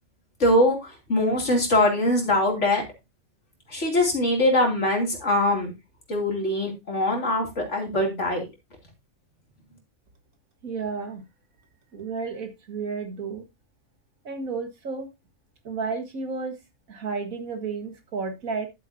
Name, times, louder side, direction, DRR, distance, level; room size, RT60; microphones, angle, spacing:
voice 1, 0.4-2.8 3.7-5.7 6.1-8.5, left 1 dB, 60° left, 1 dB, 3.3 m, -22 dB
voice 2, 10.6-11.2 11.9-13.4 14.2-15.1 15.6-16.6 16.9-18.7, right 4 dB, 85° right, 6 dB, 2.1 m, -32 dB
11.0 x 8.2 x 2.8 m, 0.23 s
omnidirectional pair, 1.4 m